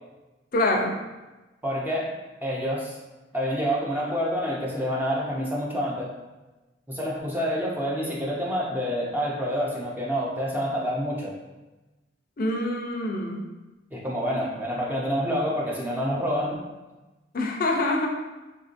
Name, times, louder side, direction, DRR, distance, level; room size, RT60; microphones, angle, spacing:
voice 1, 0.5-1.0 12.4-13.5 17.3-18.1, left 2 dB, 50° left, 2 dB, 0.5 m, -25 dB
voice 2, 1.6-2.1 2.4-3.0 3.3-6.1 6.9-11.3 13.9-16.6, equal, 10° right, -4 dB, 0.5 m, -27 dB
3.6 x 2.6 x 2.5 m, 1.1 s
head